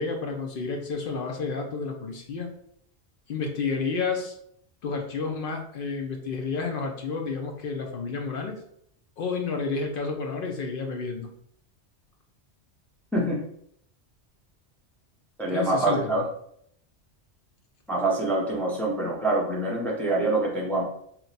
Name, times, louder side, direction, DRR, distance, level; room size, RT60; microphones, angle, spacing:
voice 1, 0.0-2.5 3.3-4.3 4.8-8.6 9.2-11.3 15.5-16.2, left 4 dB, 60° left, 3 dB, 0.7 m, -30 dB
voice 2, 15.4-16.2 17.9-20.8, right 2 dB, ahead, -3 dB, 0.4 m, -25 dB
2.9 x 2.1 x 3.9 m, 0.68 s
omnidirectional pair, 1.2 m